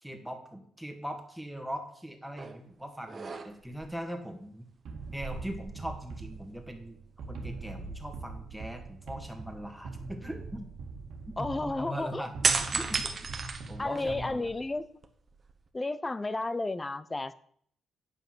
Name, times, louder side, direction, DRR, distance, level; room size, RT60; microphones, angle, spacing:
voice 1, 0.0-4.7 5.1-7.0 7.3-10.7 11.3-13.0 13.7-14.5, equal, 5° right, 4 dB, 1.9 m, -40 dB
sound 1, 2.4-2.6 3.0-3.9 5.0-6.3 6.6-6.8 12.4-14.3 14.8-15.7, right 4 dB, 40° right, 1.2 m, -33 dB
sound 2, 4.9-14.8, right 4 dB, 70° right, 1.8 m, -43 dB
voice 2, 11.4-12.3 13.8-14.9 15.7-17.3, left 2 dB, 20° left, 15 dB, 0.7 m, -32 dB
9.1 x 5.8 x 6.3 m, 0.63 s
cardioid pair, 90°, 0 cm